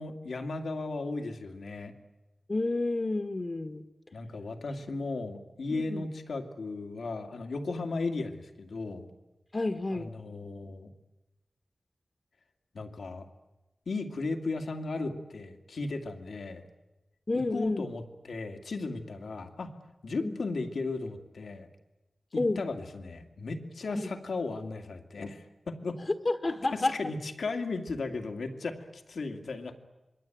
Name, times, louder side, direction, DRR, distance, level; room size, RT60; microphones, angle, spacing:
voice 1, 0.0-1.9 4.1-9.1 9.9-10.9 12.7-13.3 13.9-16.6 17.3-19.8 20.0-21.7 22.3-26.0 26.7-29.7, left 3 dB, 85° left, 6 dB, 2.4 m, -36 dB
voice 2, 2.5-3.8 5.7-6.0 9.5-10.1 17.3-17.9 20.2-20.4 22.3-22.6 23.9-24.1 26.2-27.1, left 2 dB, 40° left, 7 dB, 1.5 m, -30 dB
27.0 x 22.5 x 9.2 m, 1.0 s
wide cardioid pair, 75°, 0 cm